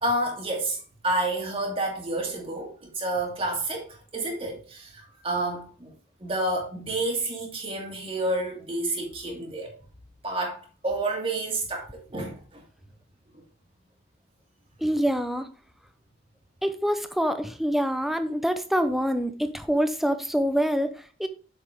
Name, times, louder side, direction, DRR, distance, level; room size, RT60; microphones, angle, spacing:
voice 1, 0.0-5.9 6.2-9.7 10.2-12.6, right 2 dB, 30° right, 2.4 m, -29 dB
voice 2, 14.8-15.5 16.6-21.3, equal, ahead, 0.6 m, -26 dB
8.0 x 6.6 x 3.5 m
head